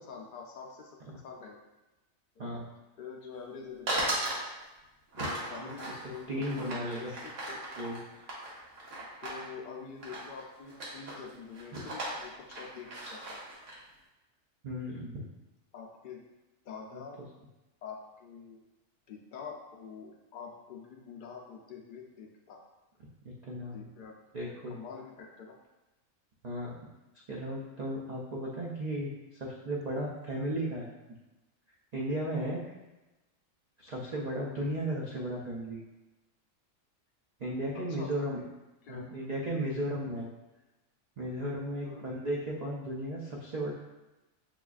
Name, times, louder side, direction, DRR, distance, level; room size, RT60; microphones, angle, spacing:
voice 1, 0.0-1.0 1.2-1.7 3.0-4.2 5.2-7.6 8.9-13.4 15.7-16.2 16.6-17.2 17.8-18.6 19.1-22.6 23.7-24.1 24.4-25.6 37.7-38.5 38.8-39.1 41.8-42.0, left 6 dB, 80° left, 0 dB, 0.4 m, -46 dB
sound 1, 3.9-4.4 5.1-9.4 10.0-10.4 10.7-11.2 11.5-13.8, right 1 dB, 70° right, 1.2 m, -37 dB
voice 2, 6.3-7.1 7.8-8.0 11.7-11.8 14.6-15.2 16.9-17.0 23.4-23.9 24.3-24.8 26.4-26.8 27.3-30.9 31.9-32.6 33.8-35.8 37.4-38.4 38.9-40.3 41.2-43.7, right 1 dB, 90° right, -4 dB, 0.3 m, -35 dB
5.7 x 2.4 x 2.3 m, 1.1 s
omnidirectional pair, 1.4 m